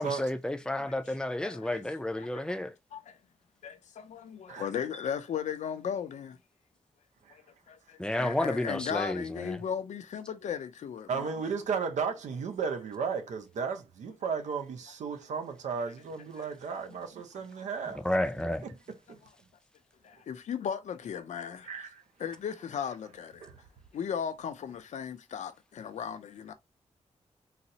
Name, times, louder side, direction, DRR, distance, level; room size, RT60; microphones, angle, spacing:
voice 1, 0.0-2.7 8.0-9.6 18.0-18.7, left 1 dB, 5° left, 0.4 m, -31 dB
voice 2, 1.4-1.9 2.2-2.6 2.9-3.2 3.6-6.4 7.3-11.4 16.4-16.5 20.0-21.7 22.2-23.4 23.9-26.5, left 8 dB, 85° left, 0.5 m, -37 dB
voice 3, 11.1-18.0 18.6-18.7 19.1-19.2 21.7-21.9 23.4-23.5, right 5 dB, 90° right, 0.6 m, -34 dB
4.0 x 2.0 x 2.7 m
cardioid pair, 90°, 12 cm